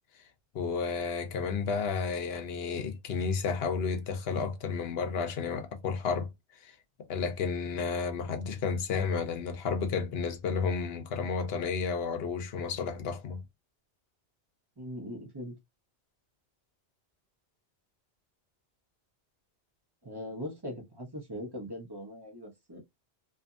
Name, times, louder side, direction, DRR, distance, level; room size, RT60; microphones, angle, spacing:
voice 1, 0.5-6.8 7.1-13.4, left 5 dB, 70° left, 0.9 m, -32 dB
voice 2, 14.8-15.6 20.0-22.8, equal, 25° right, 0.8 m, -40 dB
2.7 x 2.5 x 2.3 m
omnidirectional pair, 1.1 m